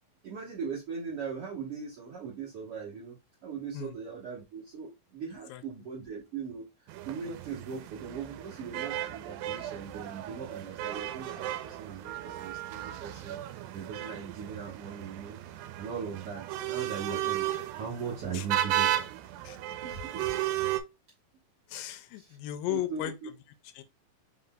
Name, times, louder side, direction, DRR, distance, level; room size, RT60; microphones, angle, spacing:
voice 1, 0.2-6.7 7.0-17.5 17.8-19.1 19.8-20.4 22.2-22.4 22.7-23.1, right 6 dB, 65° right, 1.5 m, -39 dB
sound 1, 6.9-20.8, right 13 dB, 80° right, 2.3 m, -35 dB
voice 2, 21.7-23.3 23.8-23.9, left 15 dB, 85° left, 2.2 m, -36 dB
5.2 x 3.8 x 2.2 m
omnidirectional pair, 4.1 m